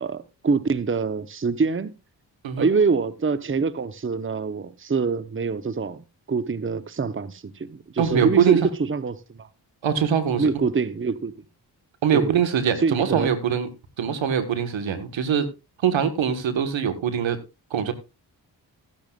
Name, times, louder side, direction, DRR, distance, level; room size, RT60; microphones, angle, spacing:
voice 1, 0.0-1.9 2.6-6.0 6.3-9.5 10.4-11.3 12.1-12.4 12.8-13.3, right 4 dB, 30° right, 0.9 m, -25 dB
voice 2, 8.0-8.6 9.8-10.5 12.0-13.7 14.0-15.5 15.8-17.4 17.7-17.9, right 8 dB, 85° right, 1.6 m, -23 dB
14.5 x 10.5 x 2.4 m
supercardioid pair, 45°, 45 cm